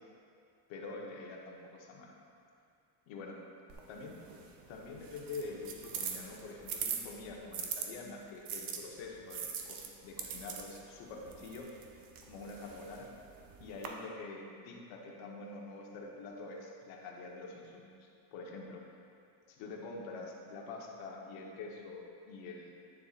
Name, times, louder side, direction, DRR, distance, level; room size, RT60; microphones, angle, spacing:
voice 1, 0.7-2.1 3.1-3.4 3.9-4.1 4.7-11.7 12.2-13.1 13.6-18.8 19.5-22.7, left 3 dB, 85° left, -1 dB, 1.2 m, -46 dB
sound 1, 3.7-7.9 8.5-13.9, right 7 dB, 50° right, 0.8 m, -43 dB
9.3 x 6.9 x 2.5 m, 2.5 s
cardioid pair, 165°, 44 cm